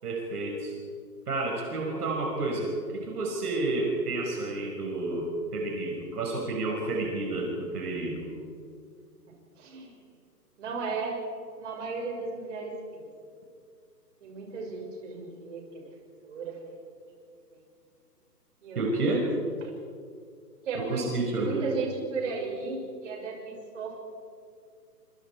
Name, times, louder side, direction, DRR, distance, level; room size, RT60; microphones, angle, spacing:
voice 1, 0.0-0.7 1.3-8.3 18.8-19.3 20.7-21.7, right 2 dB, 65° right, -1 dB, 5.8 m, -30 dB
voice 2, 9.6-9.9 10.6-11.2 11.6-13.1 14.2-15.8 16.2-16.5 17.5-17.6 18.6-18.9 19.6-19.7 20.6-21.1 21.4-23.9, right 4 dB, 45° right, 0 dB, 6.7 m, -35 dB
28.5 x 25.0 x 4.8 m, 2.2 s
hypercardioid pair, 155°, 48 cm